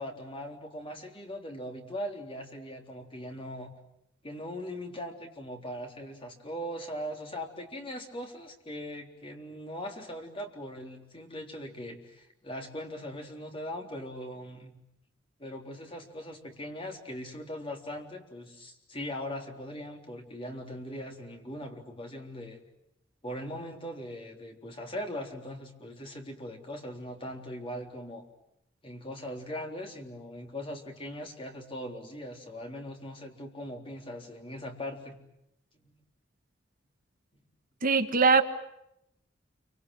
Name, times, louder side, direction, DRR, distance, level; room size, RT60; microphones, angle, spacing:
voice 1, 0.0-3.7 4.2-14.8 15.4-22.6 23.2-28.3 28.8-35.2 35.7-35.9, equal, 30° left, 2 dB, 3.7 m, -40 dB
voice 2, 37.8-38.4, right 4 dB, 45° right, 8 dB, 1.4 m, -21 dB
29.0 x 25.5 x 7.9 m, 0.80 s
head